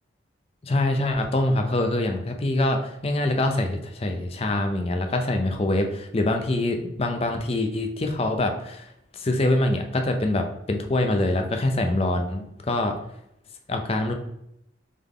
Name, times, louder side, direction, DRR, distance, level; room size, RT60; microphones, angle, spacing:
voice 1, 0.6-13.0 13.7-14.1, left 1 dB, 30° left, 4 dB, 0.5 m, -24 dB
3.7 x 3.5 x 3.7 m, 0.80 s
head